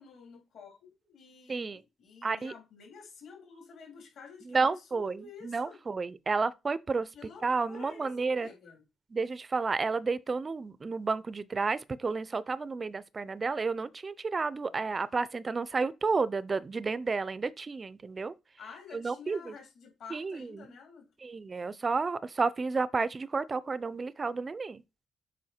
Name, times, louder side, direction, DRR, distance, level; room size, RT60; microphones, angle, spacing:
voice 1, 0.0-5.8 7.1-8.8 18.6-21.0, left 6 dB, 60° left, 3.5 m, -50 dB
voice 2, 1.5-1.8 2.2-2.5 4.5-7.1 7.4-8.5 9.1-18.3 18.9-19.5 20.1-20.7 21.2-24.8, right 4 dB, 25° right, 0.4 m, -31 dB
7.6 x 5.4 x 4.3 m
cardioid pair, 170°, 0 cm